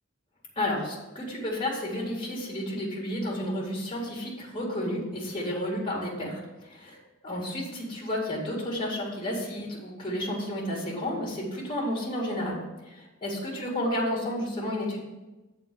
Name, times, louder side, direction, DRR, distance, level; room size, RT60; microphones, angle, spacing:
voice 1, 0.6-12.6 12.9-15.0, left 1 dB, 25° left, -3 dB, 2.3 m, -31 dB
7.7 x 4.3 x 6.9 m, 1.1 s
head